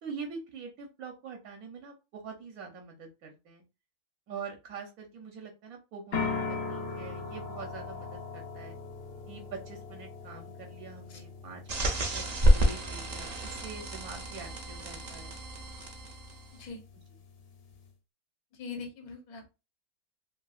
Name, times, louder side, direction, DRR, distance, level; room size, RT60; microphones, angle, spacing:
voice 1, 0.0-3.6 4.3-8.8 9.3-15.4 16.9-17.0, right 5 dB, 75° right, 3 dB, 1.2 m, -44 dB
sound 1, 6.1-17.9, left 4 dB, 55° left, 0.8 m, -41 dB
sound 2, 11.7-16.6, equal, 50° right, 0.5 m, -29 dB
voice 2, 18.6-19.5, left 4 dB, 80° left, 3 dB, 1.4 m, -41 dB
3.2 x 2.7 x 2.4 m, 0.28 s
omnidirectional pair, 1.6 m